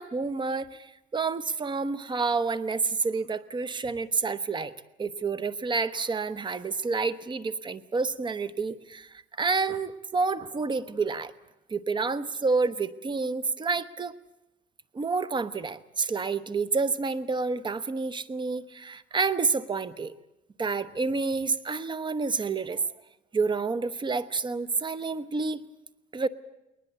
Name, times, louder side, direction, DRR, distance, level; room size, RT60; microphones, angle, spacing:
voice 1, 0.0-4.7 5.0-11.3 11.7-14.2 14.9-20.1 20.6-22.8 23.3-25.6 26.1-26.3, right 4 dB, 25° right, 15 dB, 1.0 m, -29 dB
20.5 x 20.0 x 8.1 m, 0.94 s
cardioid pair, 110°, 17 cm